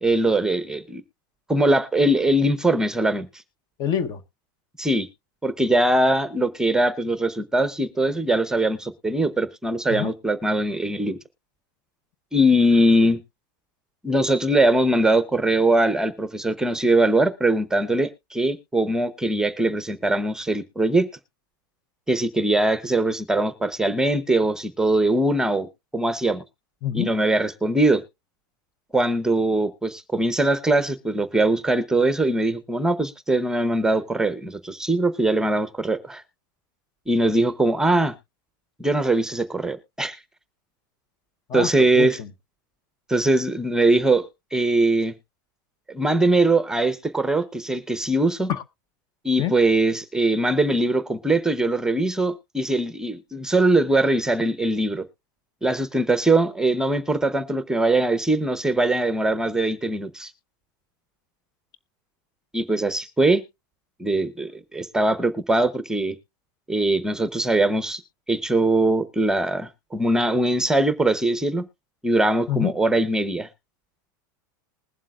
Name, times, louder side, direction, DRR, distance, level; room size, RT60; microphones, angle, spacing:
voice 1, 0.0-1.0 1.5-3.3 4.8-5.1 5.4-11.2 12.3-13.2 14.0-21.1 22.1-25.7 25.9-26.4 26.9-28.0 28.9-36.2 37.1-38.1 38.8-40.2 41.5-42.2 43.1-45.1 45.9-48.5 49.2-55.0 55.6-60.3 62.5-63.4 64.0-66.2 66.7-68.0 68.3-71.6 72.0-73.5, right 1 dB, 5° right, 0.8 m, -21 dB
voice 2, 3.8-4.2 9.9-10.1 26.8-27.1 41.5-42.3 48.5-48.6 49.4-49.5 72.5-72.7, left 10 dB, 40° left, 0.9 m, -26 dB
20.5 x 7.4 x 2.4 m
supercardioid pair, 125°, 11 cm